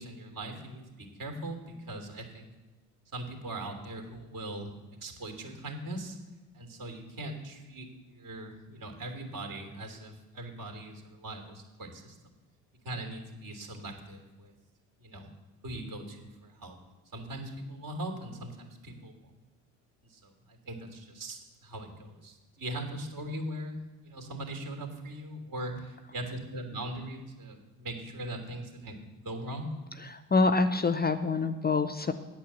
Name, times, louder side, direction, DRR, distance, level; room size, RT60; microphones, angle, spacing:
voice 1, 0.0-2.5 3.1-4.7 5.0-6.2 6.5-12.1 12.8-14.5 15.0-15.3 15.6-16.7 17.1-19.2 20.1-23.8 24.0-29.7, right 1 dB, 50° right, 4 dB, 3.0 m, -40 dB
voice 2, 30.0-32.1, left 3 dB, 25° left, 10 dB, 0.7 m, -26 dB
8.7 x 8.6 x 7.4 m, 1.1 s
hypercardioid pair, 55°, 42 cm